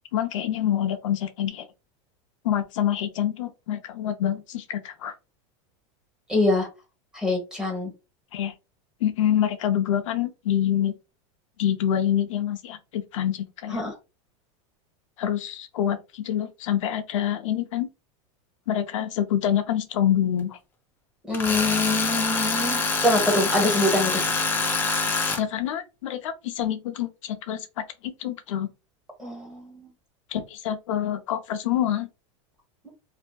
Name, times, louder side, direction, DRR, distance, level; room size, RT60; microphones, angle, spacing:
voice 1, 0.1-1.7 2.4-5.1 8.3-8.5 9.0-10.9 11.6-13.8 15.2-17.9 18.7-20.6 25.4-27.8 28.2-28.7 30.3-32.1, left 10 dB, 85° left, 0.6 m, -26 dB
voice 2, 6.3-6.7 7.1-7.9 13.7-13.9 21.3-24.2 29.2-29.9, left 2 dB, 5° right, 1.0 m, -24 dB
Tools, 21.3-25.4, left 3 dB, 15° left, 0.4 m, -25 dB
2.6 x 2.5 x 2.2 m
supercardioid pair, 140°, 16 cm